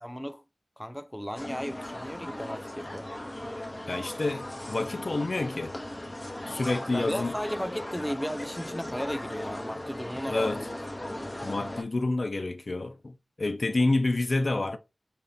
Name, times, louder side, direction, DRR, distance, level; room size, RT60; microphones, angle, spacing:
voice 1, 0.0-0.4 0.8-3.1 6.9-10.8, equal, 5° left, 0.5 m, -35 dB
sound 1, 1.4-11.8, left 1 dB, 20° left, 1.1 m, -38 dB
voice 2, 3.9-5.7 6.5-7.3 10.3-10.6 11.4-14.8, left 2 dB, 55° left, 0.6 m, -28 dB
5.7 x 2.5 x 3.5 m
wide cardioid pair, 75°, 0 cm